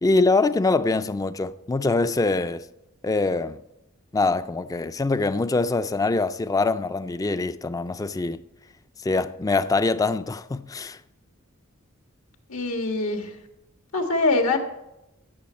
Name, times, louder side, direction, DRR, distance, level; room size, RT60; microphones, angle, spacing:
voice 1, 0.0-2.6 3.0-3.6 4.1-8.4 9.0-11.0, left 3 dB, 15° left, 0.3 m, -24 dB
voice 2, 12.5-13.3 13.9-14.6, left 3 dB, 90° left, 1.6 m, -23 dB
15.5 x 6.9 x 4.4 m
head